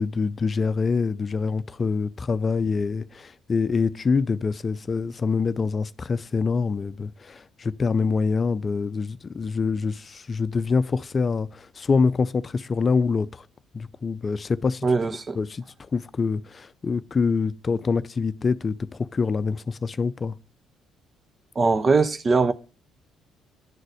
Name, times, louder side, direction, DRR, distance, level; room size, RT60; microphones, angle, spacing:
voice 1, 0.0-13.5 13.7-14.9 15.3-20.4, left 4 dB, 40° left, 0.5 m, -25 dB
voice 2, 14.8-15.4 21.6-22.5, right 4 dB, 40° right, 0.7 m, -21 dB
10.5 x 4.0 x 6.4 m
hypercardioid pair, 50°, 0 cm